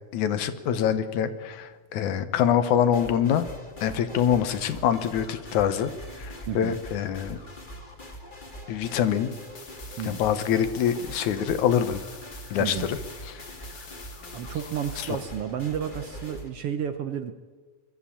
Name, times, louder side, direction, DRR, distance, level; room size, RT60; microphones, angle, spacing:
voice 1, 0.1-3.5 3.8-5.9 6.2-7.4 8.7-9.3 10.0-12.0 12.5-13.0 13.2-13.4 15.0-15.1, left 9 dB, 75° left, 11 dB, 2.4 m, -25 dB
sound 1, 2.9-16.5, equal, 20° left, 1.9 m, -43 dB
voice 2, 6.5-6.8 10.0-10.3 12.6-12.9 14.3-17.3, right 9 dB, 65° right, 9 dB, 1.6 m, -31 dB
sound 2, 9.3-15.3, left 4 dB, 35° left, 2.0 m, -46 dB
22.5 x 14.0 x 8.6 m, 1.4 s
omnidirectional pair, 3.5 m